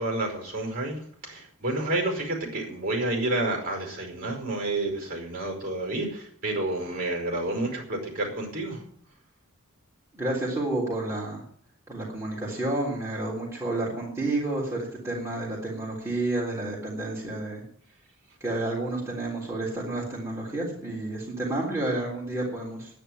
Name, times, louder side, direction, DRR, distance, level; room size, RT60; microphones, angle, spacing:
voice 1, 0.0-8.8, right 2 dB, 40° right, 2 dB, 5.0 m, -30 dB
voice 2, 10.1-11.4 11.9-17.6 18.4-22.9, right 2 dB, 15° right, -5 dB, 3.5 m, -30 dB
10.5 x 9.9 x 9.5 m, 0.64 s
head